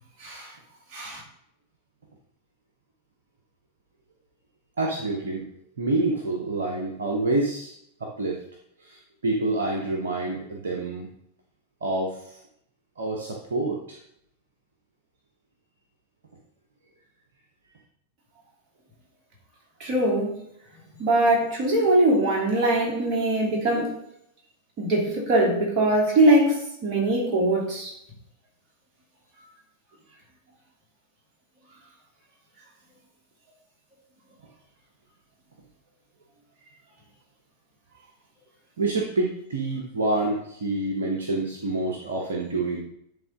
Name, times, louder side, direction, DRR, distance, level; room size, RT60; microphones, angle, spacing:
voice 1, 0.2-0.5 0.9-1.2 19.8-20.4 21.0-23.9 24.8-27.9, right 1 dB, 35° right, -3 dB, 2.7 m, -22 dB
voice 2, 4.8-5.4 5.8-7.7 8.0-8.4 8.8-11.1 11.8-12.3 13.0-14.0 38.8-42.8, right 2 dB, 65° right, 0 dB, 1.0 m, -27 dB
10.5 x 3.7 x 3.8 m, 0.74 s
figure-of-eight pair, 90°, 0 cm